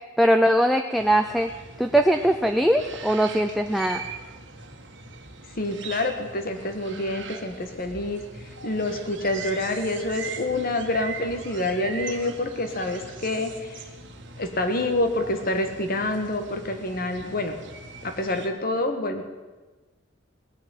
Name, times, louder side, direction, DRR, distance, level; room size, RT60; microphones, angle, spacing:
voice 1, 0.2-1.5 1.8-4.0, right 1 dB, ahead, 4 dB, 0.5 m, -21 dB
sound 1, 1.0-18.5, right 4 dB, 65° right, 1.6 m, -41 dB
voice 2, 5.6-8.2 8.6-13.8 14.4-17.6 18.0-19.2, left 2 dB, 50° left, 6 dB, 1.6 m, -27 dB
18.5 x 6.2 x 9.3 m, 1.2 s
head